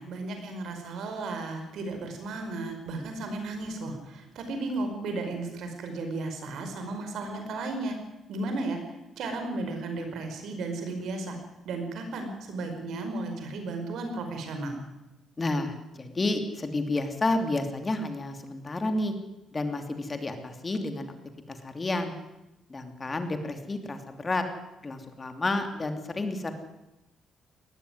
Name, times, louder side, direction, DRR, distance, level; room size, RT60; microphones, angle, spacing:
voice 1, 0.0-8.0 8.3-11.4 11.6-14.8, right 2 dB, 75° right, 5 dB, 5.1 m, -34 dB
voice 2, 15.4-19.1 19.5-21.1 21.5-22.1 22.7-24.4 24.8-26.5, left 2 dB, 30° left, 7 dB, 2.8 m, -30 dB
19.5 x 14.0 x 9.7 m, 0.95 s
cardioid pair, 90°, 0 cm